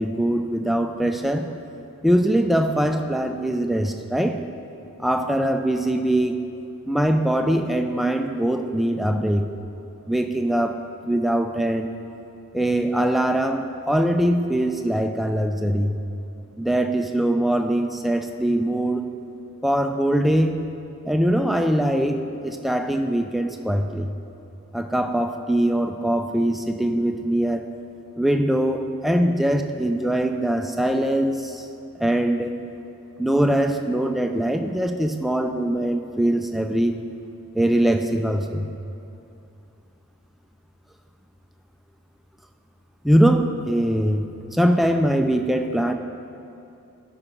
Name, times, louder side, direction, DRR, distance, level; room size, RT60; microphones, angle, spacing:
voice 1, 0.0-1.5 2.0-4.4 5.0-6.4 6.9-9.5 10.1-10.8 11.1-11.9 12.5-16.0 16.6-19.0 19.6-20.6 21.0-24.1 24.7-27.6 28.2-31.7 32.0-32.6 33.2-37.0 37.6-38.7 43.0-45.9, right 1 dB, ahead, 5 dB, 0.3 m, -22 dB
12.0 x 4.9 x 5.1 m, 2.7 s
head